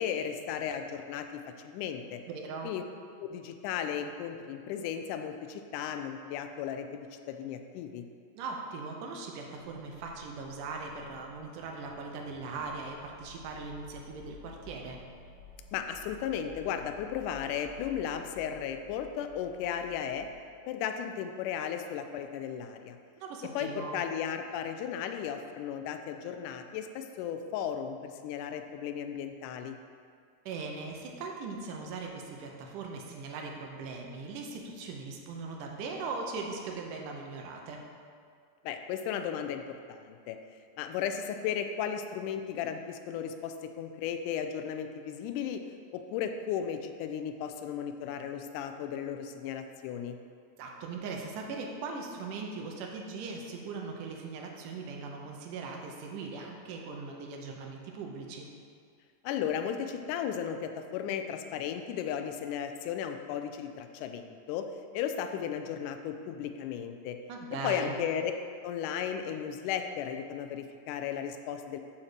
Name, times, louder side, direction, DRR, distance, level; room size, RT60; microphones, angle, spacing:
voice 1, 0.0-2.2 2.6-2.8 3.2-8.1 15.7-20.3 20.7-23.0 23.6-29.8 38.6-40.4 40.8-45.6 45.9-50.2 59.2-67.2 67.6-68.3 68.6-71.8, left 8 dB, 85° left, 7 dB, 1.8 m, -35 dB
voice 2, 2.3-2.7 8.4-15.0 23.2-24.0 30.5-37.9 50.6-58.5 67.3-68.0, right 4 dB, 75° right, 1 dB, 2.2 m, -39 dB
sound 1, 9.6-20.4, left 2 dB, 45° right, 1.1 m, -53 dB
8.8 x 4.2 x 6.5 m, 2.2 s
omnidirectional pair, 4.1 m